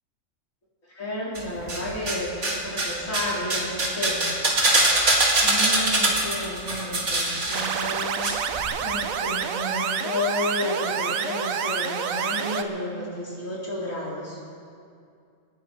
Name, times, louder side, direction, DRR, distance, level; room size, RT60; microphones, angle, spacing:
voice 1, 1.0-4.4 5.4-8.3 8.8-14.4, left 1 dB, 70° left, -7 dB, 4.6 m, -31 dB
sound 1, 1.3-2.2 2.4-8.3 8.5-8.6, right 2 dB, 60° right, 2.5 m, -23 dB
sound 2, 7.5-12.6, right 7 dB, 85° right, 1.2 m, -28 dB
27.5 x 10.0 x 4.6 m, 2.4 s
omnidirectional pair, 1.4 m